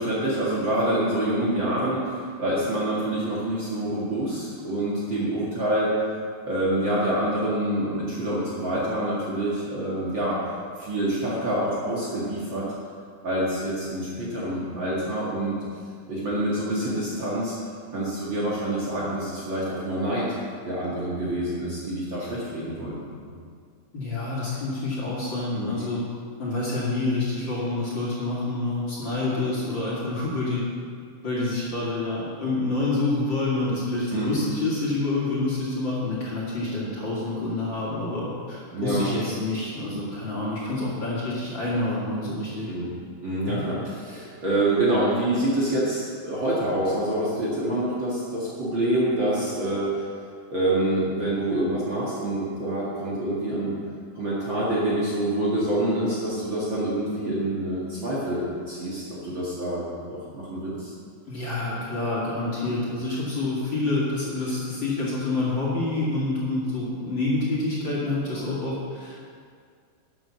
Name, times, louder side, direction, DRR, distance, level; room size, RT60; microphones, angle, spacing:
voice 1, 0.0-5.9 6.5-10.4 10.8-12.6 13.2-15.6 16.1-17.5 17.9-20.3 20.6-23.3 25.5-25.7 34.1-34.3 38.7-39.1 42.7-42.9 43.2-49.9 50.5-53.7 54.1-60.9, right 1 dB, 40° right, -7 dB, 2.3 m, -26 dB
voice 2, 23.9-26.0 26.4-30.6 31.2-42.7 43.4-43.6 61.3-69.2, left 2 dB, 35° left, -7 dB, 2.9 m, -27 dB
12.5 x 7.8 x 6.1 m, 2.1 s
omnidirectional pair, 3.8 m